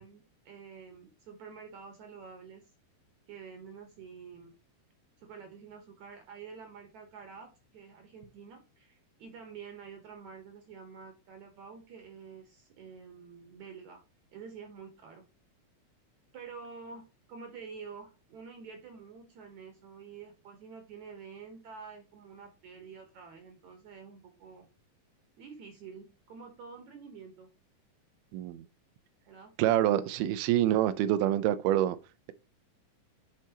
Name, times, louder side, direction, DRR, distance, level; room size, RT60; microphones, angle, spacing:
voice 1, 0.0-2.7 3.3-4.5 5.2-14.0 14.3-15.2 16.3-24.7 25.4-27.5 29.3-29.5, right 5 dB, 65° right, 2.1 m, -48 dB
voice 2, 28.3-28.7 29.6-32.0, right 13 dB, 90° right, 2.7 m, -26 dB
10.5 x 4.6 x 2.9 m
omnidirectional pair, 4.4 m